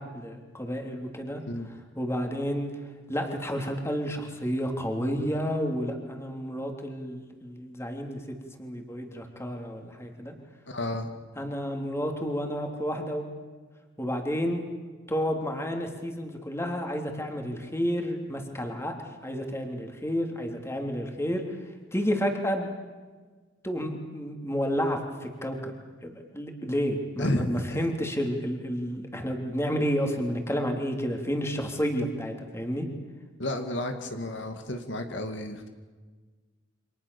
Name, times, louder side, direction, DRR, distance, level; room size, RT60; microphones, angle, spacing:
voice 1, 0.0-1.4 2.0-2.7 3.1-8.2 8.6-10.3 11.4-13.2 14.0-14.6 15.1-18.9 19.2-21.4 21.9-22.7 23.6-25.8 26.0-32.9, equal, 15° left, 3 dB, 3.4 m, -30 dB
voice 2, 10.7-11.1 27.2-27.8 33.4-35.7, left 1 dB, 70° left, 6 dB, 2.4 m, -31 dB
29.5 x 26.5 x 7.1 m, 1.4 s
head